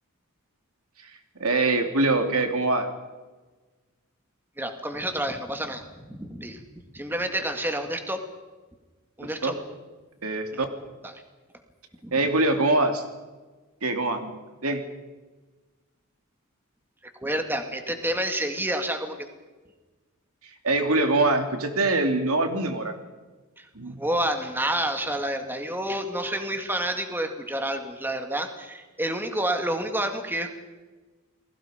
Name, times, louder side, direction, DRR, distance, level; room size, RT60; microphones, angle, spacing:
voice 1, 1.0-2.9 9.2-9.6 10.2-10.6 12.1-13.0 13.8-14.4 14.6-14.8 20.4-22.9 23.7-24.0, right 2 dB, 80° right, 5 dB, 2.8 m, -24 dB
voice 2, 4.6-6.6 6.9-8.2 9.2-9.5 10.5-10.6 12.0-12.1 17.2-19.3 23.6-23.7 24.0-30.5, right 1 dB, 10° right, 5 dB, 2.0 m, -29 dB
29.5 x 20.5 x 5.1 m, 1.3 s
head